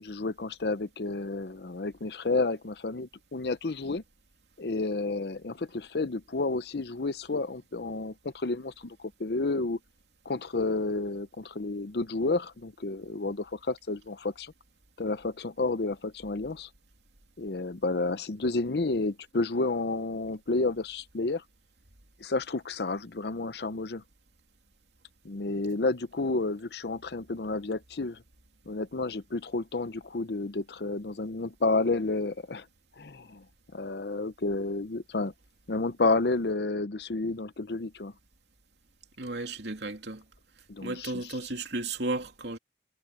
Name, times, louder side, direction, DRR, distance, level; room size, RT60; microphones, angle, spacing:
voice 1, 0.0-4.0 4.6-9.8 10.3-14.5 15.0-16.7 17.4-21.4 22.2-24.0 25.2-28.2 28.7-32.6 33.0-33.4 33.7-35.3 35.7-38.1 40.7-41.2, left 3 dB, 65° left, 0.7 m, -31 dB
voice 2, 39.2-40.2 40.8-42.6, right 2 dB, 75° right, 2.8 m, -34 dB
head